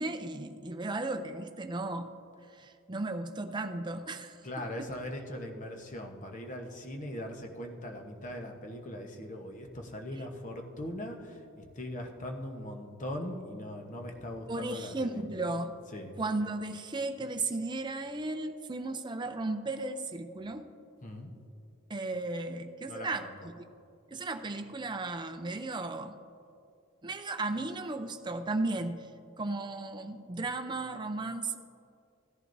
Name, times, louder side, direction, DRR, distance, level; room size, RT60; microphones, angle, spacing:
voice 1, 0.0-2.1 2.5-4.4 14.5-15.7 16.2-20.7 21.9-23.3 23.6-23.7 24.1-26.2 27.0-29.1 29.4-31.6, right 2 dB, 20° right, 7 dB, 0.5 m, -35 dB
voice 2, 4.4-15.5 15.9-16.1 21.0-21.3 22.9-23.3, left 1 dB, 35° left, 3 dB, 1.0 m, -40 dB
16.0 x 11.0 x 2.6 m, 2.5 s
head